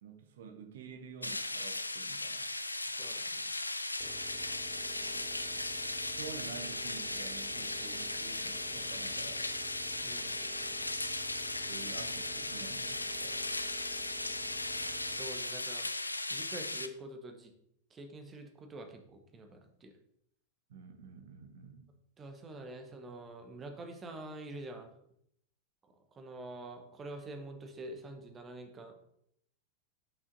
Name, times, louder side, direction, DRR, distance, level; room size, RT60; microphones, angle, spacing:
voice 1, 0.0-2.5 5.1-5.3 6.2-9.4 11.7-13.4 20.7-21.9, right 6 dB, 60° right, 6 dB, 0.9 m, -49 dB
sound 1, 1.2-16.9, left 2 dB, 85° left, 0.4 m, -37 dB
voice 2, 3.0-3.5 10.0-10.4 15.1-15.9 16.3-17.5 17.9-19.9 22.2-24.9 26.1-28.9, right 2 dB, 20° right, 6 dB, 1.0 m, -46 dB
sound 2, 4.0-15.7, right 4 dB, 5° left, 1.0 m, -52 dB
5.5 x 5.5 x 3.9 m, 0.74 s
figure-of-eight pair, 90°, 0 cm